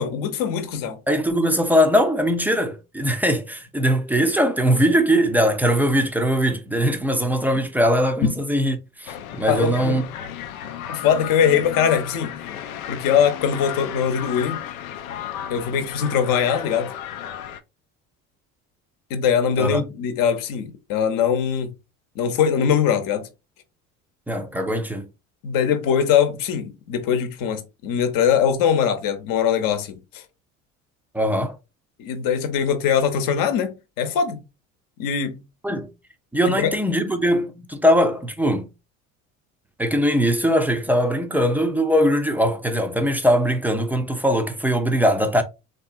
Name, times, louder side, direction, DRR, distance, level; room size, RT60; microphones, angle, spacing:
voice 1, 0.0-1.0 9.5-10.0 10.9-12.3 12.9-14.6 15.5-16.9 19.1-21.7 22.2-23.3 25.4-30.2 32.0-34.4 35.0-35.4 36.5-36.7, left 8 dB, 55° left, 0.9 m, -22 dB
voice 2, 1.1-10.0 19.6-19.8 24.3-25.1 31.1-31.6 35.6-35.9 36.3-38.7 39.8-45.4, equal, 5° right, 0.4 m, -21 dB
sound 1, 9.1-17.6, left 10 dB, 85° left, 0.5 m, -34 dB
3.5 x 2.7 x 2.5 m
hypercardioid pair, 70°, 41 cm